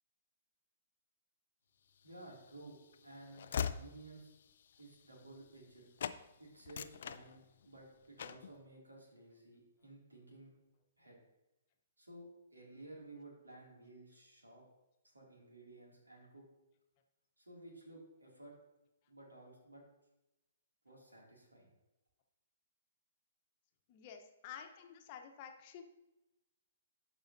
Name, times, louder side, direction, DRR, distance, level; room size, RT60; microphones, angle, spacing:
voice 1, 2.0-2.8 3.0-4.3 4.8-5.9 6.4-10.5 11.0-11.2 12.0-14.6 15.1-16.4 17.4-18.5 19.1-19.8 20.8-21.7, right 2 dB, 90° right, -2 dB, 2.6 m, -55 dB
Train / Slam, 2.1-5.7 6.0-6.2 6.6-7.8 8.2-8.5, left 8 dB, 60° left, 0.3 m, -42 dB
voice 2, 23.9-25.8, left 8 dB, 40° left, 4 dB, 1.0 m, -51 dB
12.0 x 5.0 x 2.7 m, 0.96 s
figure-of-eight pair, 120°, 0 cm